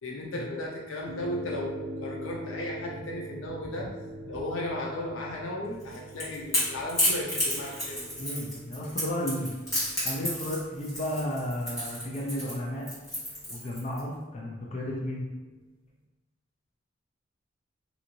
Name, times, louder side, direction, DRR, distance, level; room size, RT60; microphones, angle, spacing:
voice 1, 0.0-3.9 4.2-8.1, left 1 dB, 80° left, -2 dB, 0.6 m, -35 dB
sound 1, 1.1-15.6, right 1 dB, 45° right, 0.3 m, -45 dB
Crackle / Crack, 5.8-14.0, left 1 dB, 15° left, 1.3 m, -31 dB
voice 2, 8.2-9.6 9.9-12.8 13.5-15.3, left 1 dB, 35° left, -3 dB, 0.5 m, -33 dB
2.7 x 2.5 x 2.8 m, 1.2 s
head